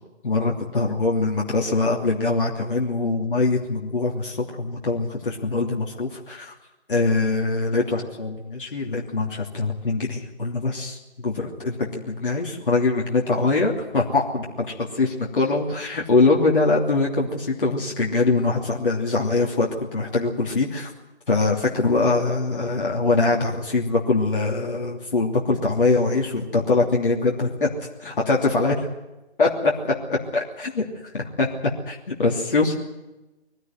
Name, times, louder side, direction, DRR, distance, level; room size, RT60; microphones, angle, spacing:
voice 1, 0.2-6.6 6.9-20.9 21.3-27.7 28.0-28.9 29.4-32.7, left 3 dB, 50° left, -1 dB, 3.0 m, -23 dB
23.0 x 16.0 x 9.3 m, 1.0 s
figure-of-eight pair, 155°, 33 cm